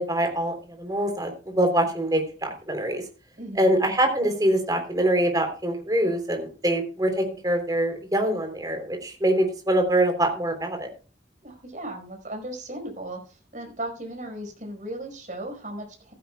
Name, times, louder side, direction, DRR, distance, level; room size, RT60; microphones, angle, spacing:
voice 1, 0.0-3.0 3.6-10.9, right 1 dB, 20° right, 4 dB, 3.4 m, -24 dB
voice 2, 3.4-3.8 11.4-16.1, right 1 dB, 45° right, 3 dB, 5.0 m, -36 dB
15.0 x 15.0 x 2.3 m, 0.34 s
head